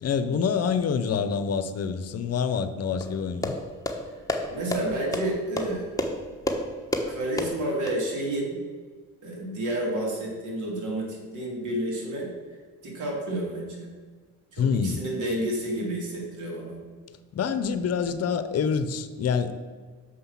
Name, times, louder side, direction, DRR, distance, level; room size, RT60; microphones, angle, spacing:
voice 1, 0.0-3.5 14.6-15.0 17.3-19.5, left 6 dB, 55° left, 11 dB, 0.7 m, -26 dB
sound 1, 3.0-7.9, left 1 dB, 10° left, 1.1 m, -31 dB
voice 2, 4.5-5.9 7.1-8.6 9.2-12.3 12.8-13.9 14.5-16.8, right 1 dB, 75° right, -1 dB, 2.8 m, -30 dB
6.5 x 5.6 x 7.2 m, 1.5 s
cardioid pair, 90°, 30 cm